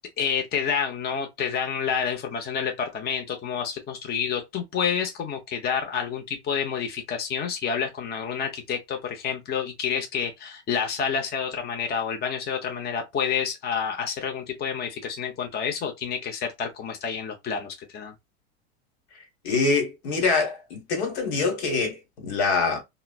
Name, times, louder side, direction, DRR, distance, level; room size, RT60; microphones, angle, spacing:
voice 1, 0.2-18.1, left 7 dB, 30° left, 0.7 m, -29 dB
voice 2, 19.4-22.8, left 4 dB, 75° left, 1.3 m, -25 dB
3.1 x 2.0 x 2.3 m
hypercardioid pair, 95°, 34 cm